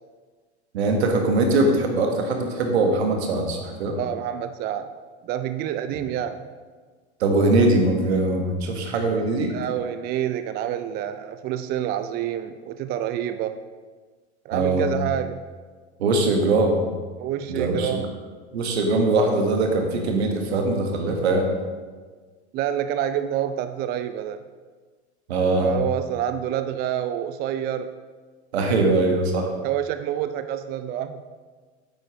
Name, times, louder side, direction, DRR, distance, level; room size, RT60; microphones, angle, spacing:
voice 1, 0.7-4.0 7.2-9.5 14.5-14.9 16.0-16.8 17.5-18.0 18.5-21.5 25.3-25.7 28.5-29.5, right 2 dB, 70° right, 3 dB, 1.5 m, -21 dB
voice 2, 3.9-4.9 5.2-6.4 9.5-13.5 14.4-15.4 17.2-18.1 22.5-24.5 25.5-27.9 29.6-31.2, right 10 dB, 30° right, 10 dB, 0.4 m, -28 dB
9.0 x 8.6 x 3.0 m, 1.5 s
figure-of-eight pair, 80°, 33 cm